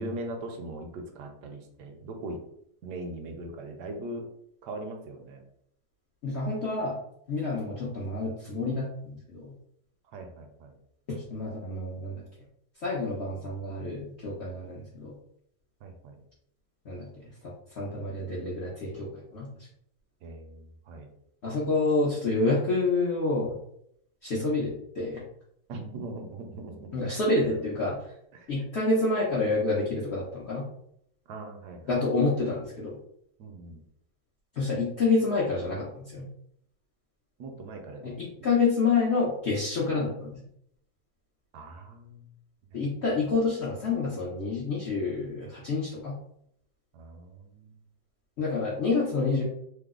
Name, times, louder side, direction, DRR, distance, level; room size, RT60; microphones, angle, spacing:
voice 1, 0.0-2.4 2.8-4.3 4.6-5.4 10.1-10.7 15.8-16.2 20.2-21.1 25.7-27.1 27.4-27.6 28.3-28.5 31.3-31.8 33.4-33.8 37.4-38.1 41.5-42.3 46.9-47.7, right 2 dB, 75° right, 4 dB, 1.0 m, -40 dB
voice 2, 6.2-7.0 7.3-9.5 11.1-12.2 12.8-15.1 16.8-19.5 21.4-23.5 24.2-25.2 26.9-28.1 28.5-30.6 31.9-33.0 34.5-36.3 38.0-40.4 42.7-46.1 48.4-49.4, left 3 dB, 90° left, -6 dB, 0.5 m, -28 dB
3.2 x 2.0 x 3.5 m, 0.72 s
omnidirectional pair, 2.1 m